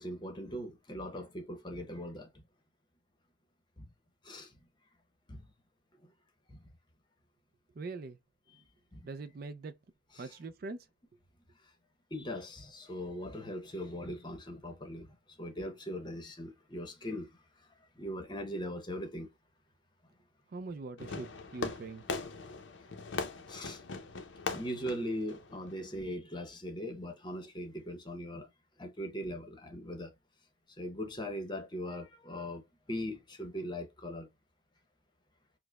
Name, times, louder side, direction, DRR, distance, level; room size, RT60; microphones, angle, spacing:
voice 1, 0.0-2.3 3.8-3.9 4.2-4.5 5.3-5.5 6.5-6.6 8.9-9.1 10.2-10.3 12.1-19.3 23.5-23.8 24.5-28.5 28.8-30.1 30.8-32.6 32.9-34.3, equal, 20° left, 0.8 m, -40 dB
voice 2, 7.7-8.2 9.0-9.8 10.2-10.8 20.5-22.0, right 3 dB, 45° right, 0.4 m, -42 dB
Fireworks, 21.0-26.0, left 4 dB, 65° left, 0.6 m, -40 dB
4.7 x 2.1 x 2.2 m
head